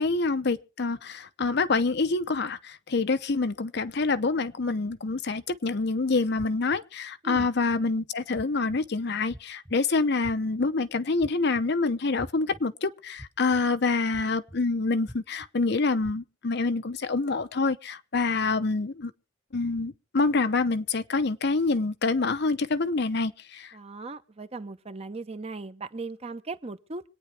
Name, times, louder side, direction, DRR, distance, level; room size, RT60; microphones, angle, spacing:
voice 1, 0.0-19.1 19.5-23.8, left 3 dB, 60° left, 0.8 m, -26 dB
sound 1, 6.4-6.8 7.4-7.8 8.3-8.8 9.3-9.7 10.2-10.6 11.2-11.6 12.2-12.6 13.2-13.6 14.1-14.6 15.1-15.5 16.0-16.1, equal, 5° right, 0.6 m, -43 dB
voice 2, 23.7-27.0, right 3 dB, 35° right, 0.9 m, -38 dB
25.5 x 9.3 x 3.3 m
head